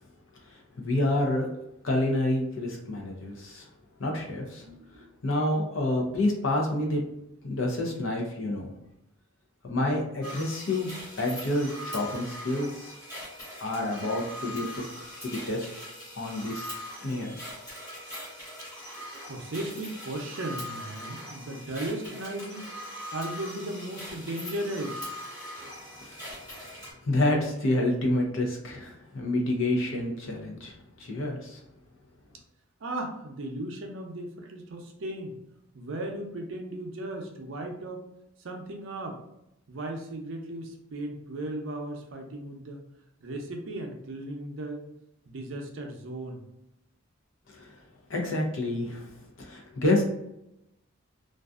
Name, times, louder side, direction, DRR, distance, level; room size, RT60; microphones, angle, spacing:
voice 1, 0.8-1.5 1.8-3.7 4.0-4.6 5.2-7.0 7.4-8.7 9.7-10.9 11.2-13.0 13.6-14.9 15.2-15.7 16.2-16.7 17.0-17.4 26.0-26.3 27.0-31.6 47.5-47.7 48.1-49.1 49.4-50.0, left 1 dB, 70° left, 0 dB, 0.6 m, -28 dB
voice 2, 4.4-5.1 18.9-19.0 19.3-22.7 23.1-25.1 32.8-35.3 35.7-38.0 38.4-39.2 39.7-42.8 43.2-44.8 45.3-46.4, right 1 dB, 65° right, 2 dB, 0.5 m, -36 dB
sound 1, 10.2-26.9, equal, 20° left, 1.1 m, -41 dB
2.5 x 2.3 x 2.3 m, 0.83 s
head